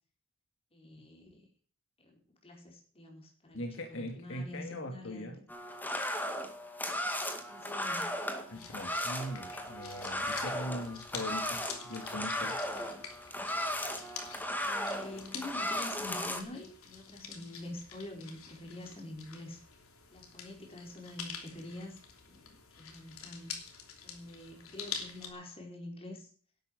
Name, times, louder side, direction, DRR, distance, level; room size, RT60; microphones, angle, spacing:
voice 1, 0.7-1.5 2.0-5.4 7.5-8.1 8.5-8.7 14.6-19.6 20.1-22.0 22.2-23.5 24.0-26.3, left 1 dB, 30° left, 1 dB, 4.7 m, -46 dB
voice 2, 3.5-5.4 8.5-12.6, left 1 dB, 65° left, 3 dB, 2.3 m, -40 dB
sound 1, 5.5-16.4, left 1 dB, 10° left, 2.1 m, -36 dB
sound 2, 8.5-25.3, left 6 dB, 90° left, 3.0 m, -47 dB
12.0 x 9.2 x 7.8 m, 0.44 s
head